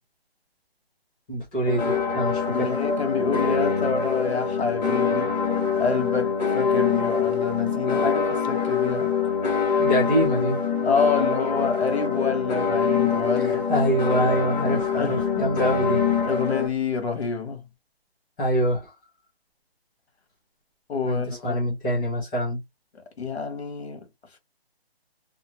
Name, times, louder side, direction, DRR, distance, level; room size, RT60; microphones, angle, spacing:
voice 1, 1.3-2.7 9.8-10.6 13.3-16.0 18.4-18.9 21.0-22.6, equal, 10° left, 0.6 m, -25 dB
sound 1, 1.7-16.7, left 6 dB, 40° left, 1.3 m, -24 dB
voice 2, 2.5-5.3 5.8-9.1 10.8-13.7 15.0-15.5 16.3-17.6 20.9-21.6 23.2-24.1, left 5 dB, 80° left, 1.3 m, -27 dB
2.8 x 2.5 x 2.8 m
hypercardioid pair, 160°, 31 cm